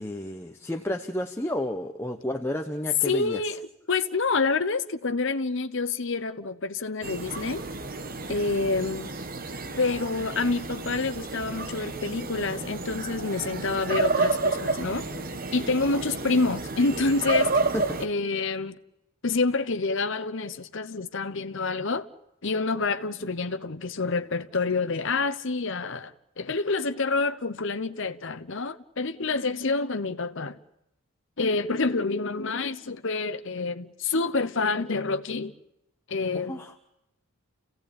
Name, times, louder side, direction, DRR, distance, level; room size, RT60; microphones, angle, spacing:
voice 1, 0.0-3.4 17.7-17.8 36.3-36.7, left 1 dB, 10° left, 1.0 m, -31 dB
voice 2, 3.0-3.6 3.9-7.6 8.3-9.1 9.8-15.0 15.5-17.6 18.0-18.8 19.2-22.1 22.4-26.1 26.4-30.6 31.4-35.5 36.1-36.6, left 3 dB, 60° left, 1.0 m, -27 dB
sound 1, 7.0-18.1, right 3 dB, 40° right, 1.4 m, -30 dB
29.5 x 16.5 x 8.8 m
head